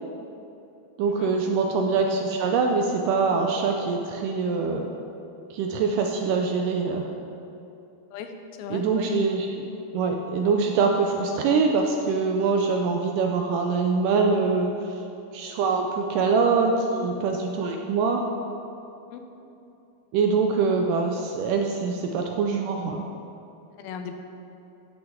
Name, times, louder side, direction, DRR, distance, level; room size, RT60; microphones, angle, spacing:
voice 1, 1.0-4.9 5.5-7.1 8.7-9.6 9.9-14.7 15.3-18.2 20.1-23.0, right 4 dB, 80° right, 3 dB, 2.0 m, -24 dB
voice 2, 8.1-8.8 19.1-19.2 23.8-24.1, left 7 dB, 90° left, 6 dB, 2.6 m, -37 dB
12.0 x 8.0 x 3.6 m, 2.8 s
omnidirectional pair, 4.2 m